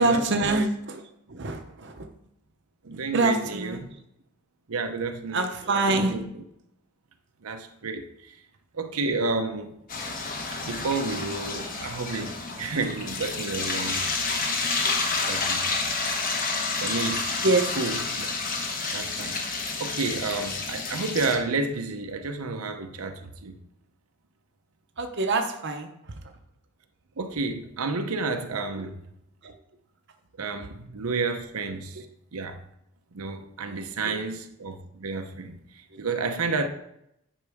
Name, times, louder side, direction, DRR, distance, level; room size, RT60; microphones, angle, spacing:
voice 1, 0.0-2.1 2.9-3.8 5.3-6.2 17.4-17.8 25.0-25.9 28.8-28.9 29.4-29.5 33.6-34.2 35.9-36.0, right 2 dB, 55° right, 0.8 m, -26 dB
voice 2, 2.8-3.9 4.7-5.4 5.9-6.2 7.4-8.3 8.7-9.8 10.5-14.2 15.3-15.7 16.8-17.3 17.8-18.3 18.9-23.5 27.2-28.9 30.4-32.1 32.3-32.6 33.1-36.7, right 3 dB, 85° right, 0.8 m, -31 dB
sound 1, 9.9-21.4, left 4 dB, 40° left, 1.1 m, -29 dB
10.0 x 5.5 x 3.5 m
head